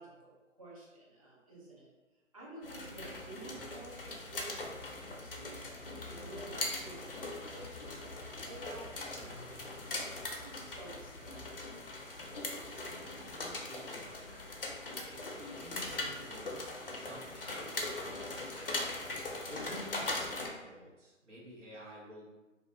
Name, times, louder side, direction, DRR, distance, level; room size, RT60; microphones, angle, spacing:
voice 1, 0.0-1.9 2.3-5.6 6.0-7.1 7.5-7.8 8.4-10.0 10.3-11.8, right 2 dB, 30° right, -6 dB, 0.6 m, -51 dB
sound 1, 2.6-20.5, left 2 dB, 45° left, 0.5 m, -41 dB
voice 2, 13.3-14.5 15.1-16.6 16.9-18.9 19.5-22.3, equal, 65° right, -6 dB, 1.1 m, -50 dB
2.5 x 2.2 x 2.8 m, 1.1 s
figure-of-eight pair, 145°, 39 cm